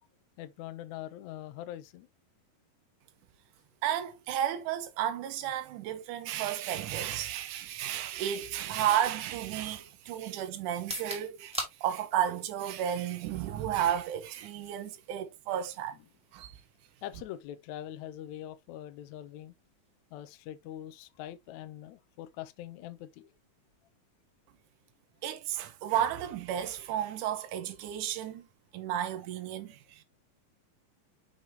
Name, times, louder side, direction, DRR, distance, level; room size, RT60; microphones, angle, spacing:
voice 1, 0.4-2.1 8.1-8.3 8.7-8.8 17.0-19.5 20.1-23.3 29.6-29.8, left 12 dB, 75° left, 1.7 m, -43 dB
voice 2, 3.8-16.0 16.3-16.5 25.2-28.5 28.7-30.0, right 10 dB, 70° right, 2.2 m, -33 dB
sound 1, 10.7-24.6, equal, ahead, 1.8 m, -48 dB
6.5 x 5.5 x 2.8 m
omnidirectional pair, 4.0 m